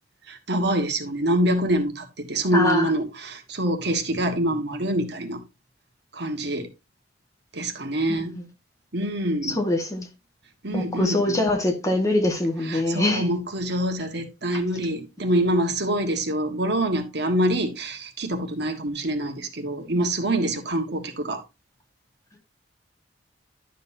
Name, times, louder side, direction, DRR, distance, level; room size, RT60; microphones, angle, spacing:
voice 1, 0.3-5.4 6.1-6.7 7.5-8.4 8.9-9.6 10.6-11.4 12.7-21.4, right 1 dB, 65° right, 1.5 m, -25 dB
voice 2, 2.5-2.9 8.1-8.4 9.4-10.1 10.7-13.3, left 1 dB, 20° left, 1.7 m, -24 dB
11.5 x 6.5 x 2.7 m
head